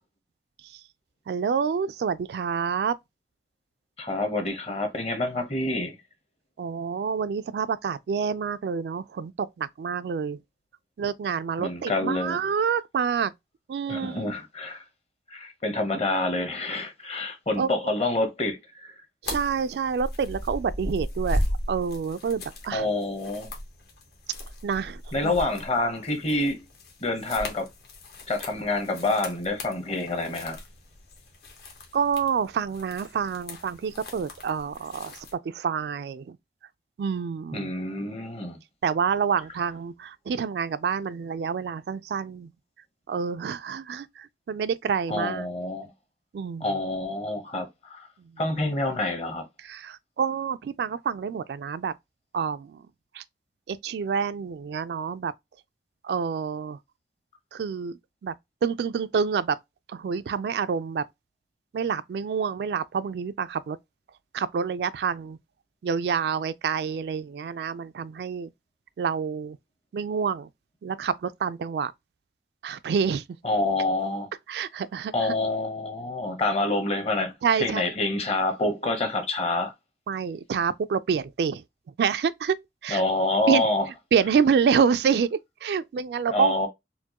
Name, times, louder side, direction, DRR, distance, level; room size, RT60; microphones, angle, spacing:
voice 1, 1.3-3.0 6.6-10.4 11.0-13.3 13.7-14.3 17.6-17.7 19.2-21.4 21.7-22.9 24.6-25.3 31.9-36.4 37.0-37.7 38.8-42.5 43.1-45.5 46.3-46.7 48.2-48.4 49.6-51.9 52.3-52.8 53.1-53.2 53.7-55.3 56.0-56.8 57.5-58.3 58.6-59.6 59.9-61.0 61.7-63.8 64.3-65.4 65.8-68.5 69.0-69.6 69.9-70.5 70.8-71.9 72.6-73.2 74.5-75.4 77.4-77.9 80.1-81.6 82.0-82.6 82.8-83.0 83.5-83.7 84.1-86.7, right 6 dB, 65° right, 0.3 m, -27 dB
voice 2, 4.0-6.0 11.6-12.4 13.9-14.8 15.3-19.0 22.7-23.5 25.1-26.6 27.0-27.7 28.3-30.6 37.5-38.6 45.1-45.9 46.6-48.1 48.4-49.5 73.4-74.3 75.1-77.3 77.6-79.7 82.9-83.8 86.3-86.7, left 2 dB, 35° left, 0.9 m, -27 dB
sound 1, 19.2-35.3, left 1 dB, 60° left, 1.0 m, -37 dB
4.4 x 2.1 x 2.9 m
head